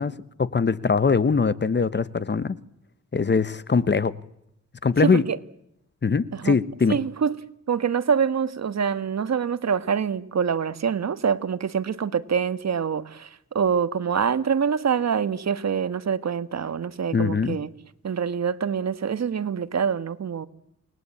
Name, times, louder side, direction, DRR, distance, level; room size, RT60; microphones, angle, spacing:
voice 1, 0.0-2.6 3.1-4.2 4.8-5.2 6.0-7.0 17.1-17.6, left 5 dB, 35° left, 1.2 m, -22 dB
voice 2, 5.0-5.4 6.3-6.6 6.9-7.4 7.7-17.7 18.0-20.5, right 7 dB, 60° right, 1.5 m, -25 dB
29.0 x 20.5 x 8.7 m
cardioid pair, 95°, 30 cm